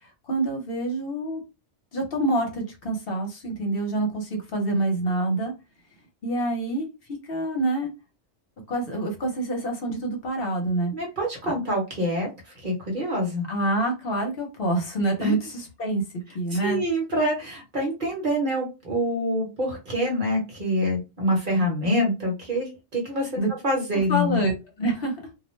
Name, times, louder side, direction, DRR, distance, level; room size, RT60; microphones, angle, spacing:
voice 1, 0.3-1.4 1.9-5.5 6.2-7.9 8.7-10.9 13.5-16.0 16.3-16.8 23.4-23.5 24.1-25.2, right 2 dB, 55° left, 2 dB, 0.9 m, -26 dB
voice 2, 10.9-12.3 12.6-13.5 15.2-15.4 16.6-24.4, equal, 45° right, 0 dB, 1.0 m, -26 dB
2.4 x 2.1 x 3.1 m, 0.26 s
omnidirectional pair, 1.2 m